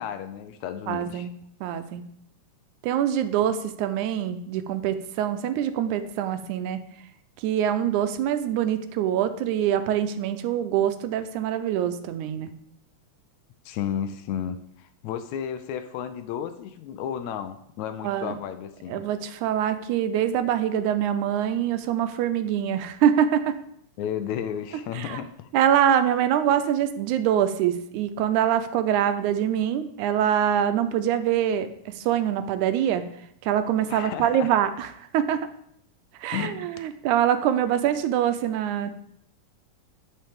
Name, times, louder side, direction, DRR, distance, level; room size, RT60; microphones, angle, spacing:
voice 1, 0.0-1.3 13.7-19.0 24.0-25.5 33.9-34.5 36.3-36.7, left 9 dB, 80° left, 9 dB, 1.8 m, -33 dB
voice 2, 0.9-1.3 1.6-2.0 2.8-6.8 7.4-12.5 18.0-18.4 18.9-23.6 24.9-25.2 25.5-33.1 33.4-35.5 36.2-38.9, right 10 dB, 85° right, 10 dB, 2.0 m, -24 dB
10.5 x 5.6 x 3.5 m, 0.72 s
omnidirectional pair, 3.5 m